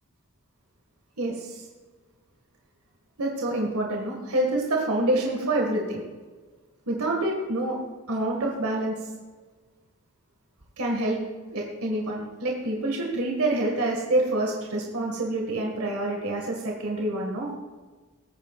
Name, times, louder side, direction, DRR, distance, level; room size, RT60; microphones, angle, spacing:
voice 1, 1.2-1.6 3.2-6.0 6.9-7.8 8.1-9.0 10.8-11.2 11.5-17.5, right 1 dB, 90° right, -1 dB, 1.9 m, -27 dB
19.5 x 9.1 x 2.5 m, 1.4 s
head